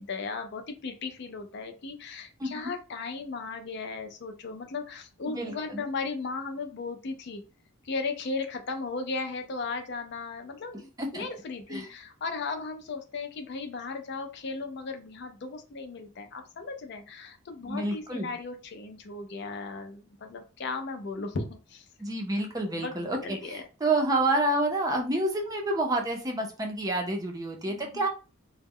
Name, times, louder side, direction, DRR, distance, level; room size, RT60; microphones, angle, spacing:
voice 1, 0.0-7.4 7.8-21.8 22.8-22.9 23.2-23.6 27.6-28.1, left 4 dB, 55° left, 5 dB, 0.4 m, -36 dB
voice 2, 2.4-2.7 5.3-5.9 11.0-11.2 11.7-11.9 17.7-18.3 22.0-28.1, right 2 dB, 15° right, 1 dB, 0.4 m, -29 dB
2.1 x 2.0 x 3.4 m, 0.33 s
head